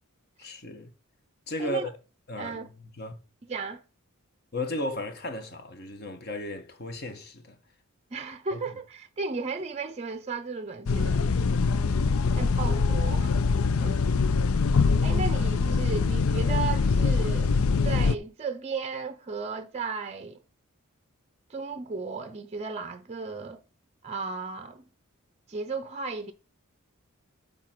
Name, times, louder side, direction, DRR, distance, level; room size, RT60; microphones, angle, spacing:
voice 1, 0.4-0.9 1.5-1.9 2.3-3.1 4.5-7.6 8.5-8.6 11.5-12.0, left 1 dB, 45° left, 1.3 m, -35 dB
voice 2, 1.6-1.9 2.4-2.7 3.4-3.8 8.1-11.2 12.4-13.4 13.8-14.0 15.0-20.4 21.5-23.6 24.0-24.8 25.5-26.3, right 4 dB, 30° right, 0.5 m, -35 dB
sound 1, 10.9-18.2, left 4 dB, 70° left, 0.5 m, -23 dB
9.6 x 3.8 x 6.0 m
head